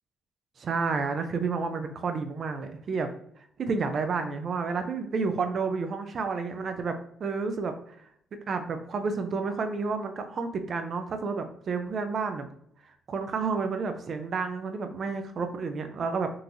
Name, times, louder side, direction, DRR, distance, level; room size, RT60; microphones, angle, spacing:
voice 1, 0.6-3.1 3.6-6.9 7.2-8.0 8.5-12.5 12.9-16.3, right 4 dB, 55° right, 7 dB, 0.4 m, -30 dB
3.8 x 2.5 x 2.9 m, 0.70 s
cardioid pair, 90°, 0 cm